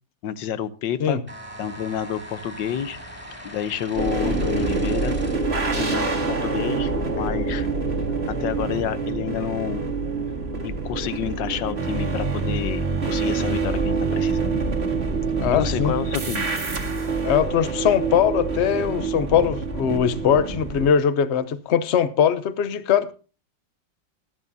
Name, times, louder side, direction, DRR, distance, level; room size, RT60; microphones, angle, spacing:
voice 1, 0.2-1.2 1.6-3.0 3.4-5.2 5.8-7.7 8.3-9.9 10.6-14.6 15.5-16.5, left 9 dB, 75° left, 1.5 m, -29 dB
sound 1, 1.3-5.7, right 1 dB, 5° right, 4.3 m, -40 dB
sound 2, 4.0-20.9, right 4 dB, 35° right, 2.1 m, -26 dB
voice 2, 15.4-15.9 17.2-23.1, left 8 dB, 50° left, 0.8 m, -21 dB
20.0 x 10.5 x 2.7 m
omnidirectional pair, 2.0 m